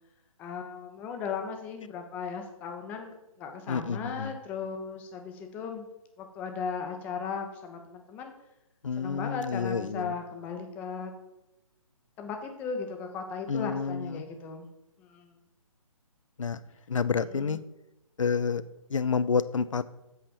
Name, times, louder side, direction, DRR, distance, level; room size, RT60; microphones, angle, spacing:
voice 1, 0.4-5.9 6.2-8.3 9.0-11.1 12.2-14.7 15.0-15.3 17.3-17.6, left 5 dB, 10° left, 4 dB, 0.5 m, -37 dB
voice 2, 3.7-4.3 8.8-10.1 13.5-14.3 16.4-16.6 16.9-17.6 18.2-18.6 18.9-19.8, left 5 dB, 65° left, 15 dB, 0.5 m, -29 dB
7.8 x 4.2 x 6.9 m, 0.94 s
figure-of-eight pair, 140°, 18 cm